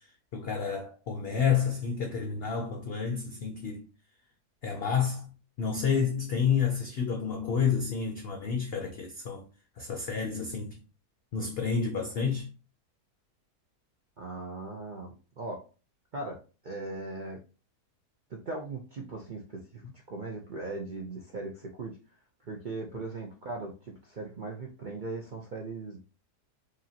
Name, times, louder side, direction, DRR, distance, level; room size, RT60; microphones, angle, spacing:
voice 1, 0.3-3.8 4.6-9.4 9.8-10.8 11.3-12.5, left 6 dB, 60° left, 0.6 m, -30 dB
voice 2, 14.2-15.7 16.1-17.4 18.3-22.0 22.4-26.0, right 2 dB, 75° right, 0.4 m, -39 dB
5.0 x 2.8 x 2.7 m
omnidirectional pair, 1.7 m